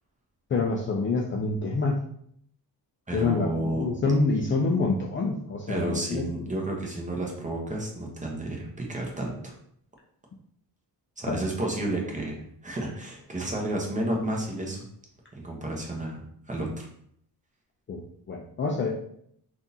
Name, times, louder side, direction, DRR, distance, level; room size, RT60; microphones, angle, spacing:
voice 1, 0.5-2.1 3.1-6.3 11.3-11.4 17.9-18.9, left 3 dB, 30° left, -1 dB, 0.4 m, -27 dB
voice 2, 3.1-4.0 5.7-9.5 11.2-14.8 15.3-16.9, right 1 dB, 20° right, -1 dB, 0.9 m, -31 dB
3.6 x 2.5 x 2.7 m, 0.67 s
cardioid pair, 105°, 40 cm